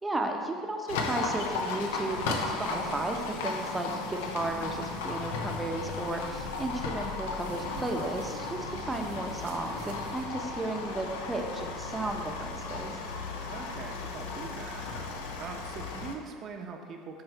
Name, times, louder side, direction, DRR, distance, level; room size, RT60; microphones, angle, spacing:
voice 1, 0.0-12.9, right 2 dB, 15° right, 3 dB, 0.7 m, -34 dB
Livestock farm animals working animals, 0.9-16.1, left 3 dB, 85° left, 0.6 m, -35 dB
sound 1, 5.5-10.2, right 5 dB, 85° right, 0.6 m, -50 dB
voice 2, 13.5-14.9 15.3-17.2, right 5 dB, 45° right, 3 dB, 0.8 m, -42 dB
7.9 x 3.2 x 4.5 m, 2.1 s
supercardioid pair, 90°, 0 cm